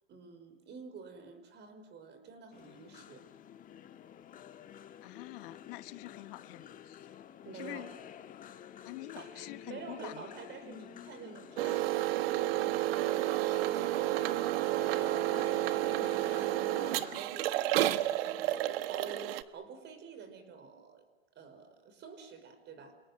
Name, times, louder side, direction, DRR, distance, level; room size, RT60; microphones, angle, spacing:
voice 1, 0.1-3.3 7.4-7.9 9.2-15.4 15.7-21.1 21.4-23.0, right 5 dB, 35° right, 5.4 m, -48 dB
sound 1, 2.5-17.2, left 9 dB, 25° left, 1.5 m, -51 dB
voice 2, 5.0-7.1 7.5-7.9 8.8-10.3, left 19 dB, 55° left, 1.4 m, -46 dB
sound 2, 11.6-19.4, right 15 dB, 60° right, 1.3 m, -31 dB
29.0 x 18.0 x 7.9 m
hypercardioid pair, 125°, 32 cm